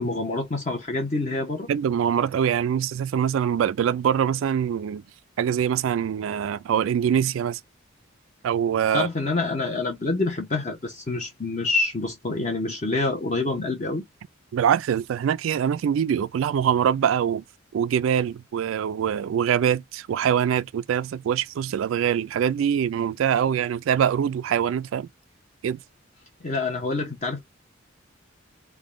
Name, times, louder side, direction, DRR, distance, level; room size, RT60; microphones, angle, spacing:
voice 1, 0.0-1.7 8.9-14.0 26.4-27.4, left 3 dB, 35° left, 0.8 m, -27 dB
voice 2, 1.7-5.0 5.4-7.6 8.4-9.1 14.5-17.4 17.7-25.1 25.6-25.8, right 8 dB, 75° right, 0.3 m, -24 dB
3.5 x 2.2 x 3.6 m
head